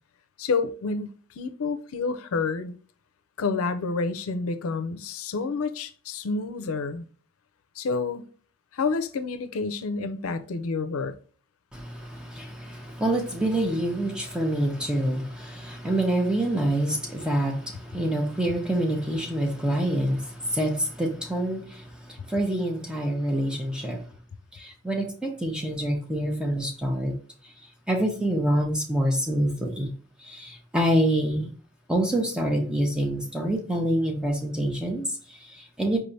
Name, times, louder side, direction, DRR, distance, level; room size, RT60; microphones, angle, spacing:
voice 1, 0.4-2.7 3.4-7.1 7.8-8.2 8.7-11.1, left 4 dB, 80° left, 0.5 m, -29 dB
voice 2, 11.7-24.1 24.5-27.1 27.4-27.5 27.9-29.9 30.2-31.5 31.9-36.0, right 1 dB, 5° right, 0.6 m, -26 dB
4.8 x 3.2 x 2.7 m
head